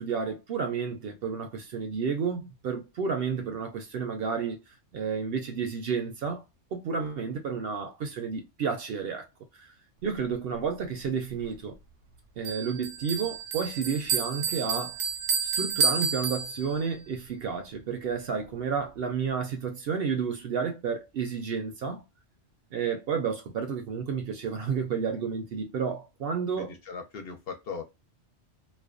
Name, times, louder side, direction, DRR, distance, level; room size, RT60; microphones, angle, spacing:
voice 1, 0.0-4.6 4.9-6.4 6.7-9.3 9.5-9.7 10.0-11.8 12.4-15.0 15.4-22.0 22.7-26.7, right 6 dB, 65° right, 0.7 m, -31 dB
Bell, 12.4-17.0, right 6 dB, 85° right, 0.9 m, -30 dB
voice 2, 26.6-27.8, left 5 dB, 60° left, 0.7 m, -39 dB
2.4 x 2.1 x 2.4 m
omnidirectional pair, 1.2 m